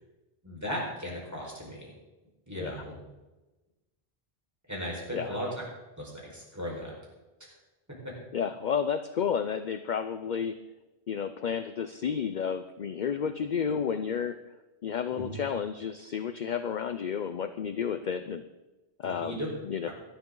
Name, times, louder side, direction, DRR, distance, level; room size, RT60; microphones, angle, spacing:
voice 1, 0.4-1.9 2.5-2.9 4.7-5.5 6.0-6.9 15.1-15.3 19.0-19.5, equal, 15° right, -4 dB, 4.8 m, -36 dB
voice 2, 8.3-10.6 11.1-14.4 14.8-18.4 19.0-19.4 19.6-19.9, left 7 dB, 50° left, 10 dB, 0.7 m, -31 dB
18.0 x 12.0 x 3.9 m, 1.1 s
omnidirectional pair, 1.1 m